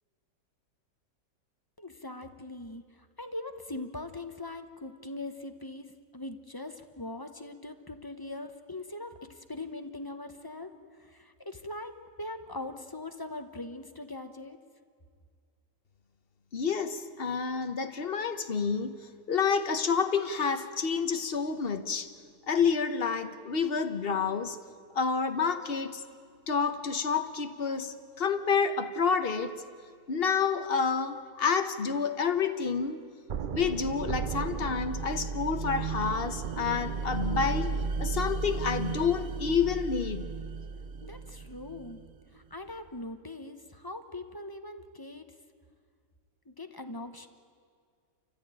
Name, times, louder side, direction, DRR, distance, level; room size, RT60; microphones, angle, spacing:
voice 1, 1.8-14.6 41.0-42.0 42.3-45.3 46.5-47.3, left 2 dB, 15° left, 7 dB, 0.8 m, -41 dB
voice 2, 16.5-19.0 19.3-22.1 22.5-24.6 24.9-26.0 26.5-29.5 30.1-33.1 33.5-37.7 38.0-40.3, left 6 dB, 40° left, 9 dB, 1.1 m, -29 dB
sound 1, 33.3-42.1, right 5 dB, 85° right, 0.4 m, -34 dB
29.0 x 14.5 x 9.0 m, 2.1 s
omnidirectional pair, 1.8 m